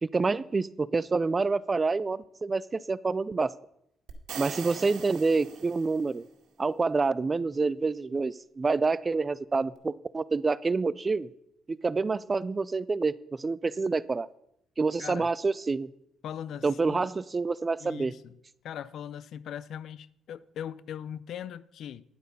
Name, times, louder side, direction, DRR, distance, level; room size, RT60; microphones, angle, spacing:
voice 1, 0.0-3.5 4.4-6.2 6.6-11.3 11.7-14.3 14.8-15.9 16.6-18.1, right 4 dB, 30° right, 0.4 m, -27 dB
sound 1, 4.1-6.2, right 7 dB, 80° right, 1.9 m, -41 dB
voice 2, 15.0-15.3 16.2-17.0 17.8-18.4 18.6-22.0, left 9 dB, 70° left, 0.4 m, -40 dB
10.5 x 8.0 x 5.4 m
cardioid pair, 90°, 0 cm